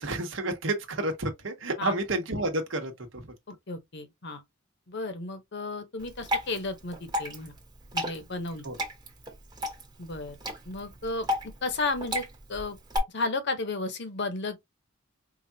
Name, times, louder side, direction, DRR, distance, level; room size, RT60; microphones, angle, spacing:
voice 1, 0.0-2.9 8.6-8.7, right 2 dB, 70° right, 1.1 m, -30 dB
voice 2, 3.7-4.4 4.9-7.5 7.9-8.7 10.0-10.4 10.7-11.3 11.6-12.2 12.5-12.8 13.1-14.6, left 3 dB, 60° left, 0.9 m, -33 dB
Water / Drip, 6.0-13.0, left 1 dB, 20° right, 1.2 m, -34 dB
4.9 x 2.4 x 2.7 m
head